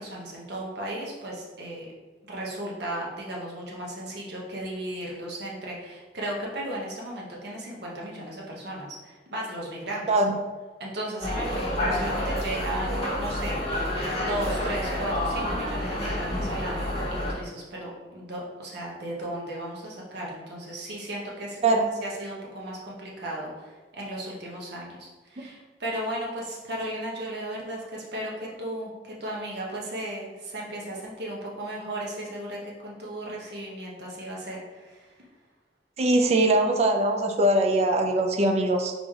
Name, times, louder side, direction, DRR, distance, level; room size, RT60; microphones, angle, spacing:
voice 1, 0.0-1.9 2.3-10.1 10.8-13.8 14.2-35.1, right 1 dB, 60° right, -3 dB, 1.0 m, -35 dB
sound 1, 11.2-17.3, left 1 dB, 35° left, 1.4 m, -29 dB
voice 2, 36.0-38.9, right 1 dB, 35° right, 4 dB, 0.4 m, -22 dB
3.9 x 3.3 x 3.6 m, 1.3 s
head